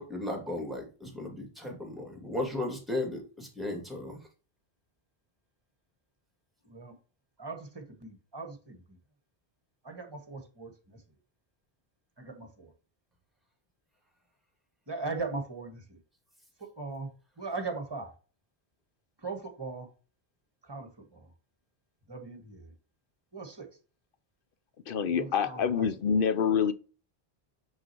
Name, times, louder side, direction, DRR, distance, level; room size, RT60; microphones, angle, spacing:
voice 1, 0.0-4.2, left 1 dB, ahead, 2.4 m, -35 dB
voice 2, 7.4-8.8 9.8-10.7 12.2-12.7 14.9-16.0 16.8-17.1 17.4-18.1 19.2-19.9 20.7-21.2 22.1-22.7 23.3-23.7 25.2-25.9, right 3 dB, 25° right, 1.5 m, -39 dB
voice 3, 24.9-26.7, left 7 dB, 65° left, 0.8 m, -26 dB
6.6 x 6.0 x 3.0 m
omnidirectional pair, 1.0 m